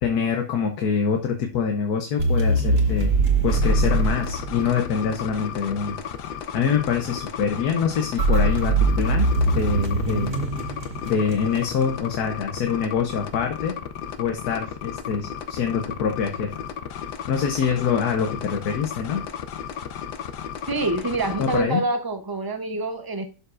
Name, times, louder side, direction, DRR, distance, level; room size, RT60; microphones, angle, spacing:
voice 1, 0.0-3.1 3.4-6.0 6.5-9.3 9.5-10.4 11.0-13.7 14.2-16.5 17.3-19.2 21.4-21.8, left 6 dB, 70° left, 4 dB, 1.3 m, -25 dB
sound 1, 2.2-5.2 8.2-11.6, right 2 dB, 75° right, 1.8 m, -22 dB
sound 2, 3.5-21.6, left 8 dB, 90° left, 1.3 m, -34 dB
voice 2, 20.7-23.2, right 2 dB, 25° right, 6 dB, 0.4 m, -26 dB
11.5 x 5.4 x 2.5 m, 0.34 s
omnidirectional pair, 1.7 m